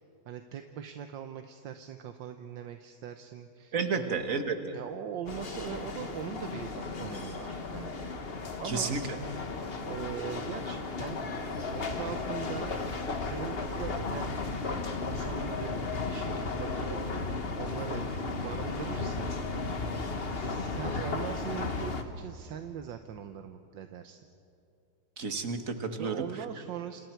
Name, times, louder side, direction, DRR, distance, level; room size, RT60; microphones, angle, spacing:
voice 1, 0.3-4.3 4.7-8.1 8.6-9.0 9.8-11.2 11.7-12.8 13.2-14.4 15.0-15.8 16.1-17.2 17.6-19.3 20.2-24.2 26.0-27.0, right 9 dB, 80° right, 7 dB, 1.6 m, -41 dB
voice 2, 3.7-4.8 8.6-9.2 25.2-26.3, right 4 dB, 45° right, 6 dB, 1.8 m, -31 dB
sound 1, 5.3-22.0, left 3 dB, 35° left, 1.3 m, -35 dB
29.5 x 27.0 x 4.6 m, 2.7 s
omnidirectional pair, 2.0 m